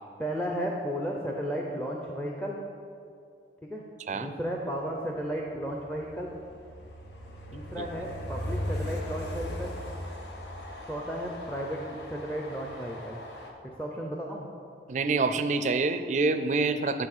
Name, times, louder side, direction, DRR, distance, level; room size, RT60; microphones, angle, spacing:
voice 1, 0.2-2.6 3.7-3.8 4.1-6.3 7.5-9.8 10.8-13.2 13.6-14.5, equal, 10° left, 0 dB, 0.5 m, -34 dB
Train, 5.1-13.5, left 1 dB, 80° left, 1.0 m, -38 dB
voice 2, 14.9-17.1, right 3 dB, 40° right, 10 dB, 0.4 m, -26 dB
8.6 x 4.2 x 6.6 m, 2.5 s
head